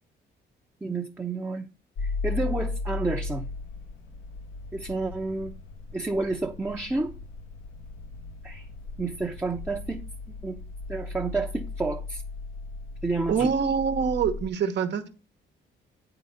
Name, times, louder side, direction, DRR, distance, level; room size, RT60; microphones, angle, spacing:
voice 1, 0.8-1.7 2.0-3.4 4.7-5.5 5.9-7.1 8.4-8.7 9.0-10.0 10.4-10.6 10.9-12.2 13.0-13.5, right 3 dB, 10° right, 0.8 m, -30 dB
sound 1, 2.0-14.5, left 3 dB, 85° left, 1.1 m, -36 dB
voice 2, 13.3-15.1, right 6 dB, 60° right, 1.1 m, -25 dB
8.6 x 4.0 x 6.5 m
cardioid pair, 90°, 20 cm